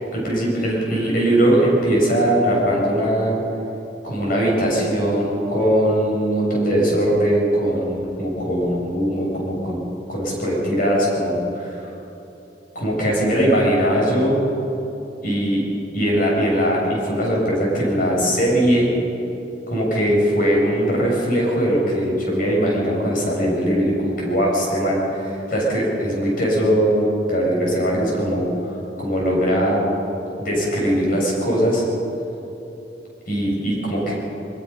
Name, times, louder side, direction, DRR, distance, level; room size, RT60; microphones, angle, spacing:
voice 1, 0.1-3.4 4.0-9.8 10.1-11.9 12.8-14.4 15.2-15.6 15.9-18.9 19.7-28.5 29.0-29.8 30.4-31.8 33.3-34.1, equal, 50° left, -3 dB, 6.9 m, -20 dB
23.0 x 21.0 x 5.7 m, 2.9 s
head